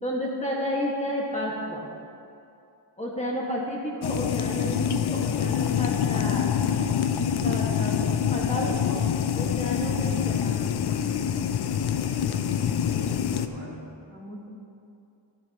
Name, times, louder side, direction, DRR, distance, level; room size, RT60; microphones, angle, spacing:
voice 1, 0.0-1.8 3.0-7.0 7.4-8.9 9.3-10.8 14.1-14.5, equal, 15° left, -5 dB, 1.7 m, -32 dB
sound 1, 4.0-13.5, left 8 dB, 55° left, 0.5 m, -26 dB
voice 2, 8.3-8.8 11.5-13.9, right 1 dB, 50° right, -3 dB, 2.0 m, -42 dB
12.0 x 11.5 x 3.0 m, 2.5 s
wide cardioid pair, 115°, 50 cm